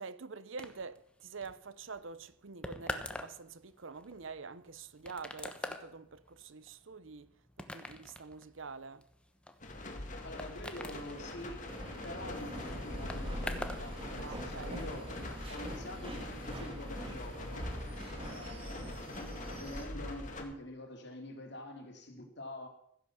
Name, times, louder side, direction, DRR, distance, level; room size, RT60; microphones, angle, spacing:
voice 1, 0.0-9.0 14.2-14.8, right 4 dB, 70° right, 0.8 m, -46 dB
sound 1, 0.6-13.9 14.1-14.8, left 1 dB, 5° left, 1.1 m, -45 dB
sound 2, 9.6-20.4, left 1 dB, 40° left, 2.3 m, -43 dB
voice 2, 10.2-11.6 12.0-15.2 15.5-17.7 18.3-22.7, left 1 dB, 55° left, 2.8 m, -46 dB
sound 3, 11.7-19.8, right 1 dB, 25° right, 2.5 m, -45 dB
14.5 x 10.5 x 7.1 m
head